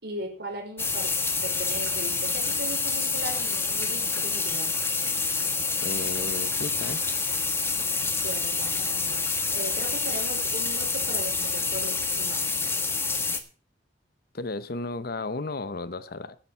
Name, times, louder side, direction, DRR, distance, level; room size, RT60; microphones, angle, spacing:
voice 1, 0.0-1.1 1.4-4.7 8.2-9.2 9.5-12.5, right 1 dB, 65° right, 3 dB, 4.9 m, -38 dB
sound 1, 0.8-13.4, left 4 dB, 15° left, 1.3 m, -27 dB
voice 2, 5.8-7.0 14.3-16.4, left 3 dB, 60° left, 14 dB, 0.8 m, -34 dB
11.0 x 10.5 x 5.5 m, 0.38 s
head